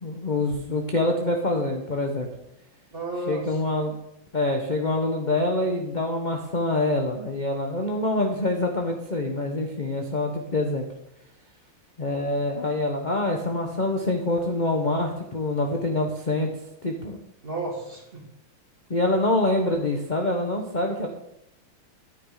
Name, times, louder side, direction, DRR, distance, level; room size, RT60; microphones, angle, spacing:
voice 1, 0.0-2.3 3.3-3.9 4.3-10.9 12.0-16.5 16.8-17.2 18.9-21.1, left 2 dB, 30° left, 2 dB, 1.0 m, -25 dB
voice 2, 2.9-3.6 17.4-18.2, right 2 dB, 25° right, -1 dB, 2.8 m, -32 dB
12.0 x 9.6 x 4.9 m, 0.82 s
omnidirectional pair, 2.3 m